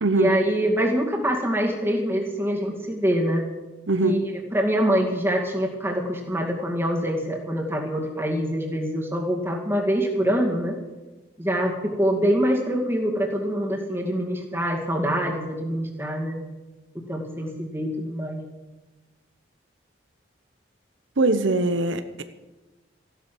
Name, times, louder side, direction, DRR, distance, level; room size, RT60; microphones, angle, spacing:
voice 1, 0.1-3.5 4.0-4.2 4.5-10.8 11.4-16.4 17.1-18.4, equal, 15° right, 0 dB, 2.3 m, -25 dB
voice 2, 21.2-22.2, right 2 dB, 85° right, 10 dB, 0.9 m, -22 dB
15.0 x 12.0 x 6.1 m, 1.1 s
head